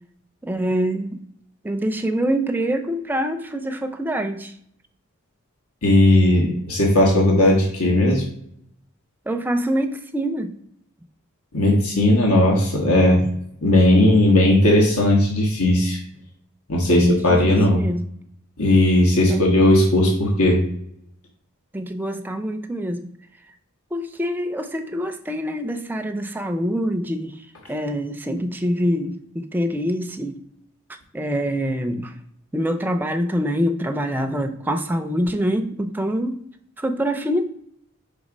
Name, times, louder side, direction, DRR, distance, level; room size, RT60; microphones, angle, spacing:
voice 1, 0.4-1.2 1.6-4.5 9.3-10.5 16.9-18.0 19.3-19.5 21.7-23.1 23.9-27.3 27.7-30.4 31.1-32.1 32.5-36.4 36.8-37.4, equal, 10° right, 6 dB, 0.4 m, -25 dB
voice 2, 5.8-8.2 11.5-13.3 13.6-16.0 16.7-17.9 18.6-20.6, left 1 dB, 85° left, -1 dB, 1.3 m, -17 dB
5.3 x 3.8 x 5.0 m, 0.68 s
head